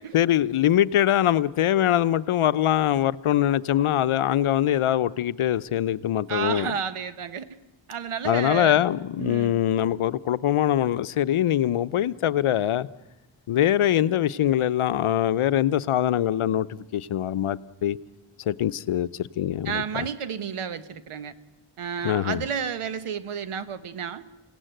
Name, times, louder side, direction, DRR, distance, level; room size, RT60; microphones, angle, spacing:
voice 1, 0.1-6.7 8.2-12.9 13.5-18.0 18.5-20.1 22.0-22.4, left 11 dB, 80° left, 0.8 m, -23 dB
voice 2, 6.3-7.5 7.9-8.8 9.2-9.6 19.6-21.3 21.8-24.2, right 7 dB, 85° right, 1.4 m, -31 dB
28.5 x 17.0 x 9.1 m
wide cardioid pair, 145°, 50 cm